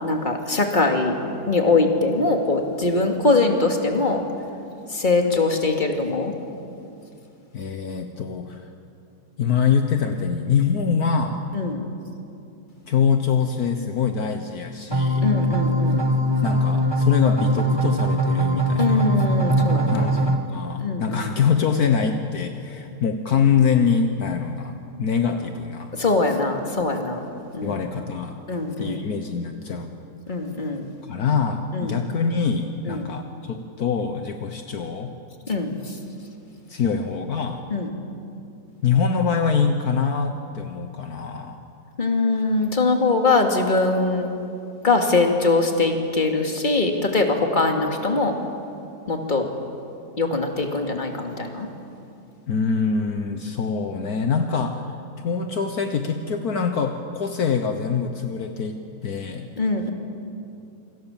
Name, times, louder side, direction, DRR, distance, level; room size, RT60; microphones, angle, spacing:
voice 1, 0.0-1.2 1.5-4.2 4.9-6.3 11.5-11.8 15.2-16.0 18.8-20.1 20.8-21.3 25.9-27.2 27.5-27.8 28.5-29.0 30.3-30.9 31.7-32.0 32.8-33.1 35.5-35.8 37.7-37.9 42.0-44.3 44.8-48.4 49.1-49.5 50.2-51.7 59.6-59.9, left 3 dB, 30° left, 3 dB, 2.5 m, -22 dB
voice 2, 7.5-8.7 9.4-11.5 12.9-15.2 16.4-19.1 19.9-25.9 27.6-28.4 28.8-29.9 31.1-35.1 36.7-37.7 38.8-41.6 52.5-54.9 55.2-59.5, left 6 dB, 65° left, 6 dB, 1.6 m, -24 dB
sound 1, 14.9-20.4, right 1 dB, 15° right, 1.6 m, -21 dB
28.0 x 25.0 x 7.3 m, 2.6 s
omnidirectional pair, 1.8 m